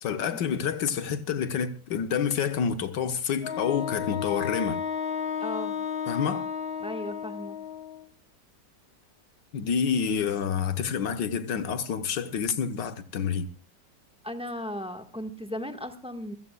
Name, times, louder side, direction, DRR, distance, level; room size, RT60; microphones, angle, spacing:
voice 1, 0.0-4.8 6.1-6.5 9.5-13.5, left 7 dB, 80° left, 1.7 m, -28 dB
Wind instrument woodwind instrument, 3.4-8.1, left 7 dB, 40° left, 1.0 m, -33 dB
voice 2, 5.4-5.7 6.8-7.6 14.2-16.4, equal, 5° right, 1.3 m, -36 dB
27.0 x 15.0 x 2.3 m
omnidirectional pair, 1.9 m